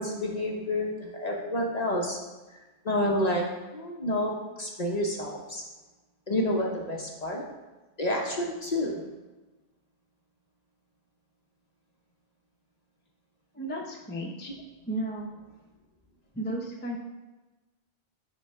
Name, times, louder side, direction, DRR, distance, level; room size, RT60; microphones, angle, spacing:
voice 1, 0.0-2.2 2.8-3.5 3.7-5.6 6.3-7.4 8.0-9.0, left 1 dB, 40° left, -1 dB, 0.8 m, -29 dB
voice 2, 13.5-14.5 14.9-15.3 16.3-17.0, right 1 dB, 10° left, 0 dB, 0.6 m, -33 dB
6.4 x 3.3 x 5.6 m, 1.2 s
omnidirectional pair, 1.2 m